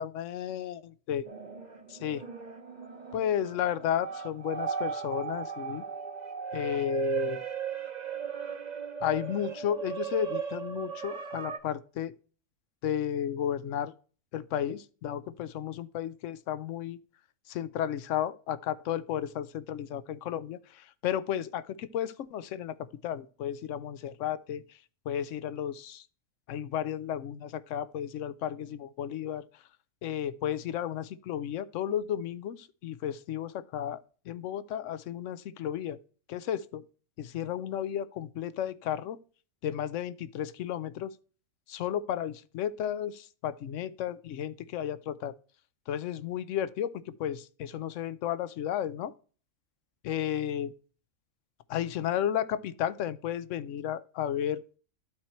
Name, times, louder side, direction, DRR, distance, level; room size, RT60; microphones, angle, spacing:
voice 1, 0.0-1.2 2.0-2.2 3.1-5.8 6.5-7.4 9.0-12.1 12.8-13.9 14.3-17.0 17.5-24.6 25.1-26.0 26.5-29.4 30.0-34.0 34.3-36.0 36.3-36.8 37.2-39.2 39.6-41.1 41.7-45.3 45.9-49.1 50.0-50.7 51.7-54.6, left 10 dB, 70° left, 0.9 m, -33 dB
sound 1, 1.3-11.6, right 7 dB, 35° right, 0.9 m, -37 dB
12.0 x 4.4 x 3.0 m
omnidirectional pair, 1.4 m